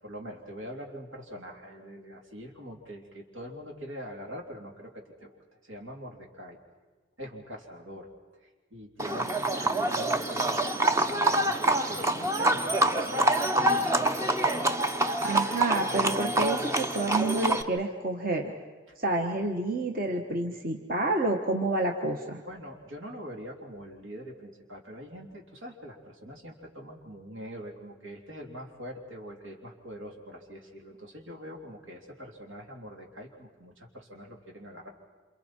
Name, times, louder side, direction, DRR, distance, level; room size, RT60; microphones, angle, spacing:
voice 1, 0.0-5.4 5.6-6.6 7.2-8.1 8.4-14.2 18.9-19.0 22.4-34.9, equal, 80° right, 1 dB, 3.4 m, -44 dB
Livestock farm animals working animals, 9.0-17.6, right 2 dB, 15° right, 0.7 m, -26 dB
voice 2, 15.2-18.5 19.0-22.4, right 2 dB, 45° right, 2 dB, 1.4 m, -29 dB
28.0 x 27.5 x 4.5 m, 1.3 s
head